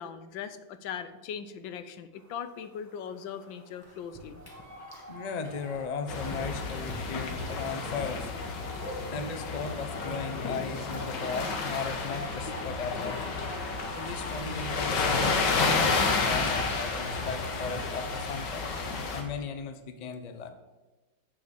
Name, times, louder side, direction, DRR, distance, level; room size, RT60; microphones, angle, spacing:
voice 1, 0.0-4.4, left 7 dB, 85° left, 12 dB, 1.5 m, -39 dB
sound 1, 2.1-18.3, equal, 10° right, 1.3 m, -47 dB
Dog, 3.8-14.4, equal, 15° left, 1.4 m, -49 dB
voice 2, 5.1-8.3 8.8-13.4 13.9-18.6 19.1-20.5, left 5 dB, 45° left, 7 dB, 0.5 m, -36 dB
sound 2, 6.1-19.2, left 4 dB, 70° left, 1.9 m, -31 dB
7.6 x 6.9 x 7.4 m, 1.1 s
omnidirectional pair, 2.0 m